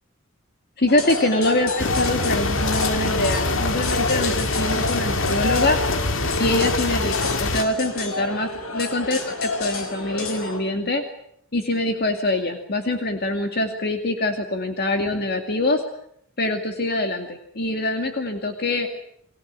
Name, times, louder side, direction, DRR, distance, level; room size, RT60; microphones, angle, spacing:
voice 1, 0.8-5.8 6.4-11.0 11.5-15.8 16.4-18.9, left 2 dB, 50° left, 5 dB, 2.4 m, -24 dB
sound 1, 0.9-10.6, left 3 dB, 80° left, 5.3 m, -29 dB
sound 2, 1.8-7.6, left 2 dB, 65° left, 2.3 m, -25 dB
29.5 x 23.0 x 7.6 m, 0.70 s
head